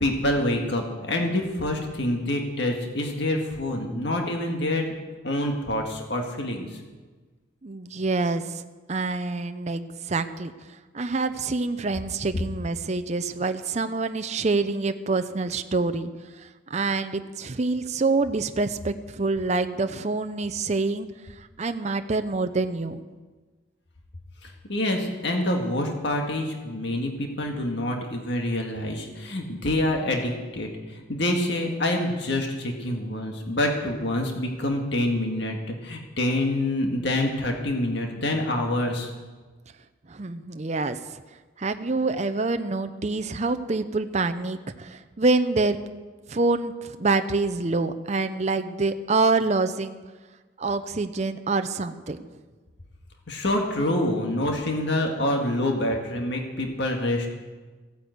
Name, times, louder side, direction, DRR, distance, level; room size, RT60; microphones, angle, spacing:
voice 1, 0.0-4.9 5.2-6.7 24.7-30.7 31.1-39.1 53.3-57.3, left 1 dB, 60° left, 2 dB, 1.8 m, -26 dB
voice 2, 7.6-8.6 8.9-10.5 10.9-16.1 16.4-21.1 21.6-23.0 40.1-41.0 41.6-45.8 46.3-50.0 50.6-52.3, right 3 dB, 35° right, 9 dB, 0.6 m, -26 dB
15.0 x 9.5 x 8.0 m, 1.3 s
head